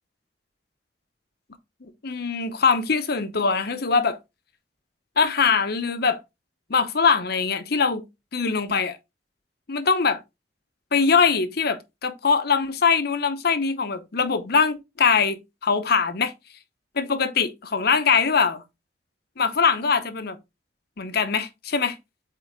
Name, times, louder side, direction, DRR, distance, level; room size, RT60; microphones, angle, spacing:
voice 1, 2.0-4.2 5.2-6.2 6.7-8.0 8.3-9.0 9.7-10.2 10.9-16.3 17.0-18.6 19.4-20.4 21.0-21.9, left 5 dB, 60° left, 0.9 m, -22 dB
8.3 x 3.8 x 3.7 m
head